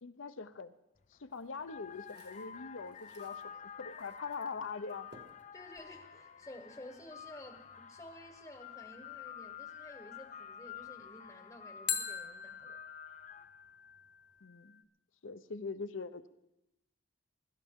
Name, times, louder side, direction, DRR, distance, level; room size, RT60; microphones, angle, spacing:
voice 1, 0.0-0.7 1.1-5.2 14.4-14.8 15.2-16.3, left 4 dB, 80° left, 12 dB, 0.7 m, -43 dB
sound 1, 1.0-1.2 1.6-13.7, left 8 dB, 35° left, 0.4 m, -50 dB
sound 2, 1.3-3.4 3.9-4.5 4.8-6.3, right 2 dB, 55° right, 1.6 m, -62 dB
sound 3, 3.8-4.9 11.9-14.8, left 8 dB, 60° left, 1.2 m, -42 dB
voice 2, 5.5-12.8, left 1 dB, 15° left, 5 dB, 0.9 m, -52 dB
23.5 x 12.5 x 3.7 m, 0.93 s
head